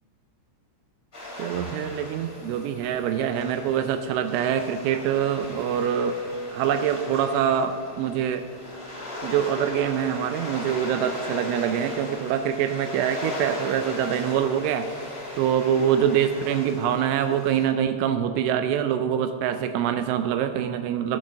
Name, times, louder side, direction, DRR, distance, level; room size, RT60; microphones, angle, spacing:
sound 1, 1.1-17.6, left 1 dB, 15° left, 2.5 m, -38 dB
voice 1, 1.4-6.2 6.5-8.5 9.2-14.9 15.4-21.2, right 9 dB, 85° right, 8 dB, 2.7 m, -25 dB
13.5 x 8.0 x 6.3 m, 2.2 s
omnidirectional pair, 5.8 m